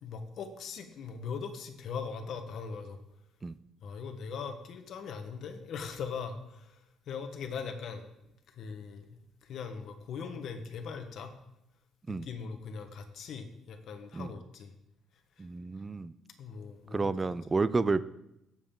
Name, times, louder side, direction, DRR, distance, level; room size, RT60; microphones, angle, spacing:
voice 1, 0.0-3.0 3.8-6.8 7.1-8.0 8.5-11.3 12.1-14.7 16.4-17.1, left 5 dB, 55° left, 7 dB, 1.3 m, -40 dB
voice 2, 15.4-16.1 16.9-18.0, right 3 dB, 15° right, 16 dB, 0.4 m, -30 dB
17.5 x 7.3 x 3.8 m, 0.86 s
cardioid pair, 165°, 0 cm